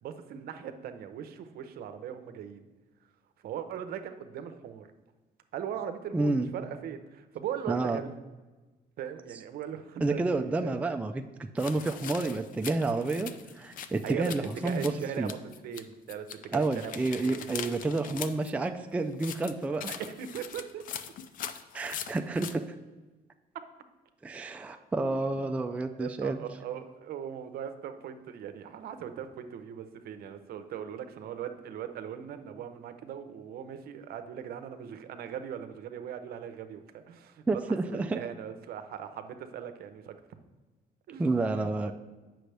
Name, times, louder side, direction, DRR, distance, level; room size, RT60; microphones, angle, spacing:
voice 1, 0.0-2.6 3.4-4.9 5.5-8.1 9.0-10.8 14.0-15.4 15.6-17.5 20.0-20.8 25.0-25.5 26.0-37.6 37.9-40.2 41.1-41.9, right 9 dB, 65° right, 9 dB, 0.7 m, -39 dB
voice 2, 6.1-6.5 7.7-8.0 10.0-14.9 15.2-15.3 16.5-19.9 21.7-22.6 24.2-26.4 37.5-38.2 41.2-41.9, right 3 dB, 10° right, 6 dB, 0.3 m, -30 dB
sound 1, 11.6-15.8 16.1-18.5 19.1-22.5, left 8 dB, 55° left, 0.5 m, -42 dB
7.8 x 6.1 x 3.3 m, 1.2 s
cardioid pair, 110°, 17 cm